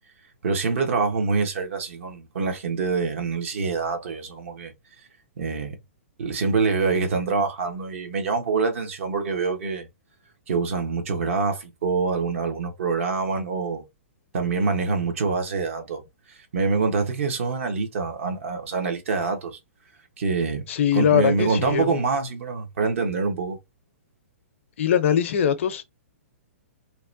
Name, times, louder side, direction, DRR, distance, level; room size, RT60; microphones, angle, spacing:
voice 1, 0.4-4.7 5.4-5.8 6.2-9.9 10.5-13.8 14.3-16.0 16.3-19.6 20.2-20.7 20.9-23.6, right 4 dB, 65° right, 1.1 m, -25 dB
voice 2, 20.7-22.1 24.8-25.8, left 9 dB, 65° left, 0.6 m, -22 dB
2.9 x 2.1 x 2.5 m
hypercardioid pair, 135°, 8 cm